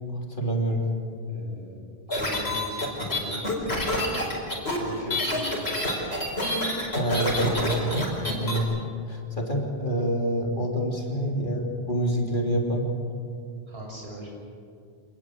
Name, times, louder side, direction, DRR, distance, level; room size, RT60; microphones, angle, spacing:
voice 1, 0.1-0.9 6.9-8.0 8.4-8.7 9.1-12.9, right 1 dB, 50° left, 0 dB, 3.6 m, -27 dB
voice 2, 1.3-1.8 2.1-2.6 2.9-3.7 4.7-5.8 13.7-14.3, equal, 70° right, -2 dB, 7.3 m, -40 dB
sound 1, 2.1-8.6, left 1 dB, 70° left, 5.3 m, -27 dB
26.5 x 20.0 x 8.0 m, 2.3 s
omnidirectional pair, 1.1 m